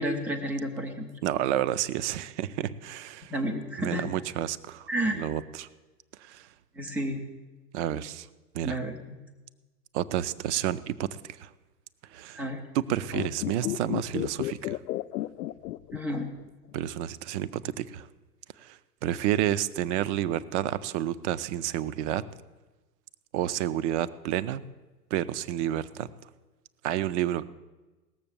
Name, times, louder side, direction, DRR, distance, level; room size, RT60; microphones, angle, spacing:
voice 1, 0.0-1.1 3.3-4.1 4.9-5.1 6.8-7.2 8.6-9.2 12.3-12.6 15.9-16.3, right 1 dB, 5° right, 4 dB, 0.3 m, -31 dB
voice 2, 1.2-3.3 3.8-5.7 6.2-6.5 7.7-8.3 8.5-8.8 9.9-11.5 12.1-12.4 12.7-14.8 16.7-18.1 18.6-22.2 23.3-24.6 25.1-26.1 26.8-27.5, right 12 dB, 45° right, 15 dB, 0.6 m, -30 dB
sound 1, 13.1-16.5 16.7-16.8, left 15 dB, 70° left, 0.6 m, -32 dB
18.0 x 6.9 x 6.9 m, 1.2 s
hypercardioid pair, 110°, 50 cm